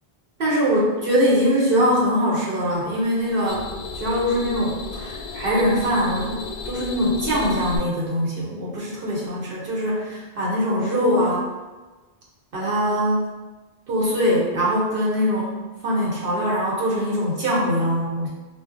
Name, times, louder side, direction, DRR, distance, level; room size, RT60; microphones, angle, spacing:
voice 1, 0.4-3.6 4.0-11.4 12.5-13.3 13.9-15.5 15.8-18.3, equal, 65° right, -5 dB, 0.8 m, -22 dB
sound 1, 2.9-7.8, left 4 dB, 80° left, 0.8 m, -34 dB
3.8 x 2.0 x 2.4 m, 1.2 s
omnidirectional pair, 1.1 m